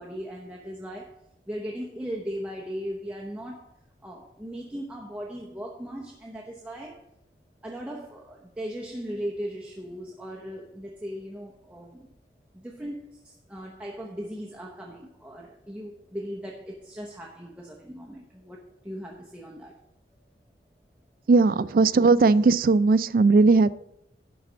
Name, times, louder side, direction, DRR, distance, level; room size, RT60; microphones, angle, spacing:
voice 1, 0.0-3.7 4.0-7.1 7.6-12.1 12.5-19.8, equal, 5° right, 0.8 m, -38 dB
voice 2, 21.3-23.7, right 3 dB, 50° right, 0.3 m, -18 dB
11.0 x 4.2 x 7.2 m
head